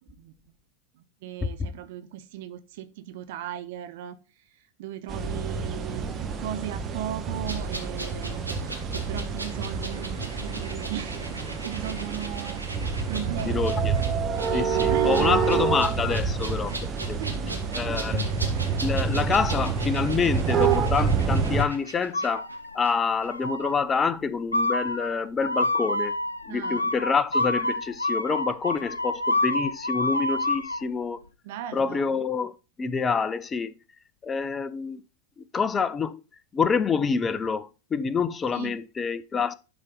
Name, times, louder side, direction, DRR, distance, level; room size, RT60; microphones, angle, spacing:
voice 1, 1.2-4.2 4.8-8.5 8.9-11.2 11.6-12.6 13.1-13.8 14.5-15.9 17.1-17.5 18.1-18.4 26.5-26.9 31.4-32.2 38.5-38.8, right 11 dB, 50° right, 0.7 m, -37 dB
sound 1, 5.1-21.6, right 5 dB, 25° right, 1.1 m, -27 dB
sound 2, 7.5-22.9 23.2-23.3, right 2 dB, 85° right, 1.2 m, -39 dB
voice 2, 13.4-13.9 14.5-17.2 17.7-18.2 18.8-22.4 22.7-26.2 26.5-31.2 31.7-33.7 34.2-35.0 35.5-36.2 36.5-39.5, left 5 dB, 20° left, 0.5 m, -27 dB
sound 3, 22.1-22.9 23.3-23.8 24.5-30.8, left 1 dB, 80° left, 0.5 m, -28 dB
11.0 x 4.0 x 3.8 m
figure-of-eight pair, 90°, 0 cm